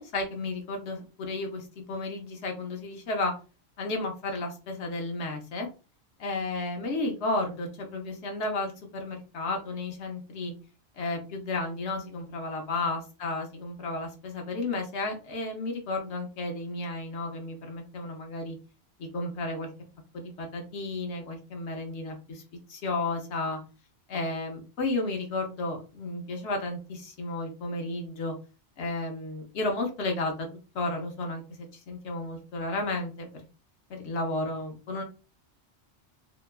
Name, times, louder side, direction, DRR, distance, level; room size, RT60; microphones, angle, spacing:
voice 1, 0.0-3.3 3.8-5.7 6.2-10.5 11.0-18.6 19.0-19.7 20.1-22.4 22.7-23.6 24.1-28.3 28.8-30.5 30.7-33.4 33.9-35.0, left 2 dB, 75° left, 3 dB, 1.0 m, -33 dB
2.9 x 2.3 x 2.2 m, 0.33 s
omnidirectional pair, 1.2 m